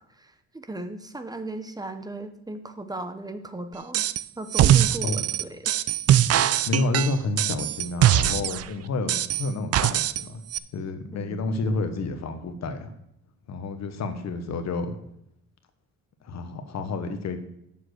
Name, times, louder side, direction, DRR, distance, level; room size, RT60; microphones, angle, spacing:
voice 1, 0.1-4.0 4.4-5.7 11.1-11.4, right 2 dB, 15° right, 9 dB, 0.9 m, -37 dB
sound 1, 3.9-4.2 4.5-8.7 9.1-10.2 10.5-10.6, right 11 dB, 55° right, 0.5 m, -21 dB
voice 2, 6.7-10.4 10.7-12.9 13.5-15.0 16.2-17.4, left 3 dB, 60° left, 8 dB, 1.2 m, -29 dB
7.5 x 6.9 x 6.4 m, 0.76 s
cardioid pair, 90°, 30 cm